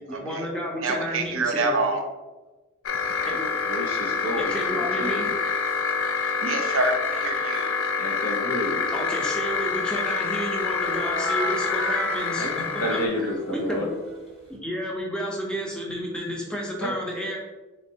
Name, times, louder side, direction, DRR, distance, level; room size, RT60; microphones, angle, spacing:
voice 1, 0.0-1.8 3.2-3.4 4.4-5.3 8.9-12.5 12.7-13.0 13.5-13.9 14.5-17.4, equal, 5° left, -2 dB, 0.6 m, -31 dB
voice 2, 0.8-2.1 6.2-7.7, right 3 dB, 65° right, 5 dB, 0.5 m, -26 dB
sound 1, 2.8-13.1, left 5 dB, 65° left, 0.4 m, -27 dB
voice 3, 3.5-5.3 8.0-8.9 12.4-12.5 12.8-13.9 16.8-16.9, left 1 dB, 85° left, -1 dB, 0.9 m, -30 dB
sound 2, 11.0-14.6, right 1 dB, 30° left, 0.9 m, -34 dB
3.9 x 3.3 x 2.7 m, 1.2 s
head